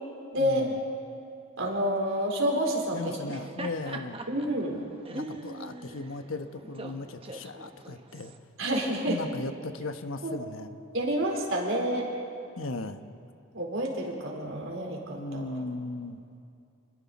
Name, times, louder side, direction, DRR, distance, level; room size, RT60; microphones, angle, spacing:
voice 1, 0.4-0.8 2.9-4.2 5.1-8.3 9.1-10.8 12.6-13.0 15.2-16.2, left 2 dB, 85° left, 8 dB, 1.1 m, -37 dB
voice 2, 1.6-3.2 4.3-4.8 8.6-9.2 10.2-10.3 10.9-12.1 13.5-15.6, equal, 85° right, 0 dB, 4.0 m, -29 dB
Laughter, 3.1-8.4, right 2 dB, 25° right, 1.1 m, -42 dB
29.5 x 21.0 x 4.2 m, 2.5 s
head